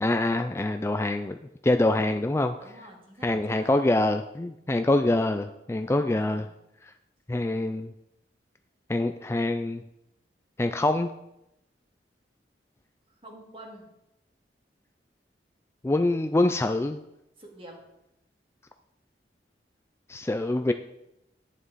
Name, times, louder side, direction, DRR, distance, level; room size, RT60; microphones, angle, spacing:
voice 1, 0.0-1.4 1.6-2.5 3.2-6.4 7.3-7.9 8.9-9.8 10.6-11.1 15.8-17.0 20.1-20.7, left 2 dB, 15° left, 8 dB, 0.3 m, -25 dB
voice 2, 2.6-4.0 5.7-6.5 13.2-13.9 17.4-17.8, right 1 dB, 30° right, 1 dB, 2.1 m, -47 dB
11.0 x 9.6 x 4.1 m, 0.86 s
head